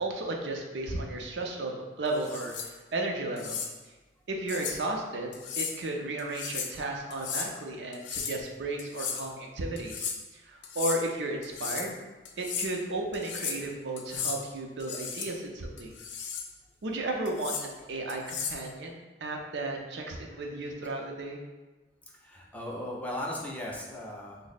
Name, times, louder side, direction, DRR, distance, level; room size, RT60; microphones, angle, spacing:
voice 1, 0.0-3.6 4.3-12.0 12.4-15.9 16.8-21.4, right 2 dB, 70° right, 1 dB, 0.5 m, -34 dB
sound 1, 2.2-2.7 3.4-3.7 4.5-4.8 5.3-5.8 6.2-6.8 7.1-7.5 7.9-8.4 8.8-9.3 9.8-10.2 10.6-11.0 11.4-11.9 12.2-12.7 13.1-13.6 14.0-14.4 14.8-15.3 15.8-16.5 17.3-17.7 18.1-18.6, left 6 dB, 85° left, 0.4 m, -35 dB
voice 2, 22.1-24.4, left 1 dB, 10° left, -3 dB, 0.4 m, -37 dB
3.5 x 2.0 x 4.0 m, 1.2 s
head